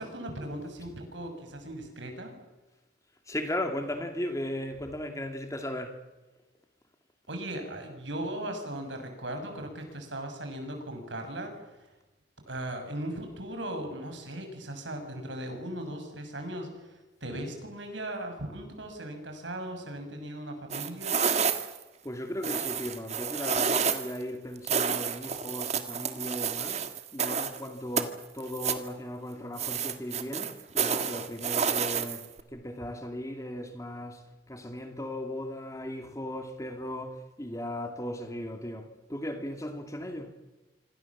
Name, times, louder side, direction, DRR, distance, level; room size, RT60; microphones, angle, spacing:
voice 1, 0.0-2.3 7.3-11.5 12.5-21.2, right 1 dB, 90° right, 6.9 m, -38 dB
voice 2, 3.3-6.0 22.0-26.8 27.1-32.2 32.5-34.2 34.5-40.3, left 1 dB, 15° left, 2.7 m, -37 dB
sound 1, 20.7-21.8 22.4-24.2 24.7-27.6 28.0-28.9 29.6-32.4, right 6 dB, 35° right, 1.7 m, -29 dB
27.0 x 26.0 x 7.5 m
head